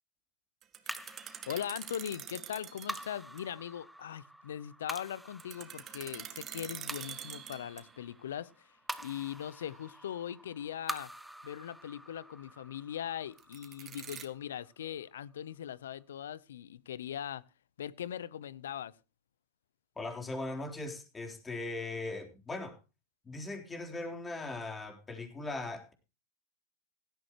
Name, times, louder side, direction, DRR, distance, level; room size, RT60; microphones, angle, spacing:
sound 1, 0.6-3.1 3.4-3.5 5.4-8.0 13.4-14.3, right 9 dB, 35° right, 1.9 m, -45 dB
voice 1, 0.9-1.2 1.5-8.7 9.0-11.1 11.4-17.4 17.8-18.9, left 10 dB, 85° left, 0.7 m, -40 dB
sound 2, 0.9-15.4, right 1 dB, 5° right, 0.9 m, -47 dB
voice 2, 20.0-22.8 23.2-25.9, left 2 dB, 15° left, 3.7 m, -39 dB
17.0 x 13.0 x 3.0 m
hypercardioid pair, 105°, 0 cm